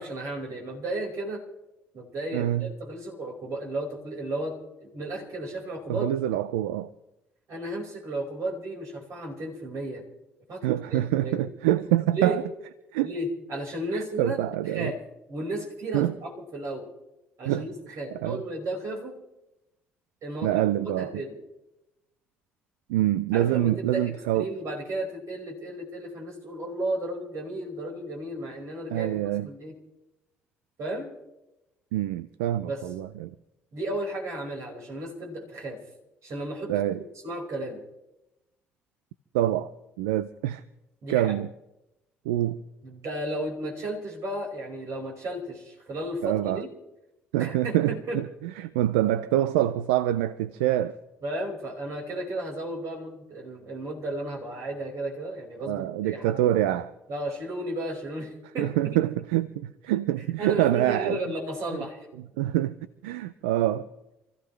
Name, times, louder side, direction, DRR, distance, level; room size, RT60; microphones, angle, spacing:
voice 1, 0.0-1.4 1.9-4.5 4.8-6.1 7.5-10.0 10.5-11.5 12.1-12.4 13.0-14.4 14.7-15.0 15.3-16.9 17.4-19.1 20.2-20.7 21.0-21.3 23.3-29.7 30.8-31.1 32.7-32.8 33.7-35.8 36.2-36.7 37.2-37.8 41.0-41.4 42.8-46.7 47.4-48.2 51.2-56.6 57.1-58.7 60.4-62.0, right 1 dB, 60° right, 5.1 m, -34 dB
voice 2, 2.3-2.7 5.9-6.9 10.6-12.4 12.9-13.1 13.9-14.9 15.9-16.1 17.4-18.4 20.4-21.2 22.9-24.5 28.9-29.5 31.9-33.3 36.7-37.0 39.3-39.7 40.0-40.6 41.1-41.5 42.2-42.6 46.2-46.6 47.3-51.0 55.7-56.9 58.6-61.2 61.7-61.8 62.2-62.8 63.0-63.9, right 13 dB, 80° right, 0.5 m, -26 dB
27.5 x 15.0 x 3.3 m
hypercardioid pair, 50°, 6 cm